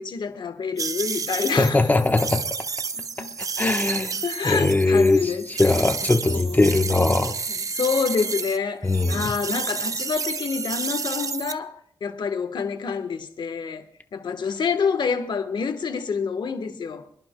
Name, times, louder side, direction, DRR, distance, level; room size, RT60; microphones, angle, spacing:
voice 1, 0.0-1.9 2.9-3.3 4.2-5.7 6.2-6.8 7.5-11.8 12.0-13.8 14.1-17.0, left 5 dB, 70° left, 1.3 m, -27 dB
sound 1, 0.8-8.6 8.9-11.5, right 5 dB, 45° right, 0.6 m, -30 dB
voice 2, 1.6-2.4 3.6-4.2 4.4-5.3 5.6-7.3 8.8-9.3, left 2 dB, 20° left, 1.1 m, -20 dB
28.5 x 11.0 x 2.3 m
cardioid pair, 85°, 8 cm